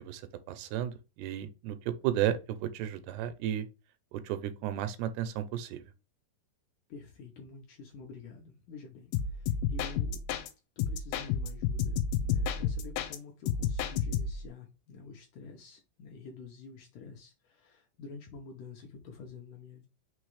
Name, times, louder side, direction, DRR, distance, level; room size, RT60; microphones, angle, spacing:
voice 1, 0.0-3.7 4.1-5.8, right 11 dB, 90° right, 2.8 m, -33 dB
voice 2, 6.9-10.2 10.8-19.9, left 4 dB, 70° left, 2.1 m, -48 dB
sound 1, 9.1-10.5 10.8-13.2 13.5-14.5, left 7 dB, 90° left, 2.8 m, -31 dB
6.2 x 3.2 x 4.8 m
omnidirectional pair, 4.7 m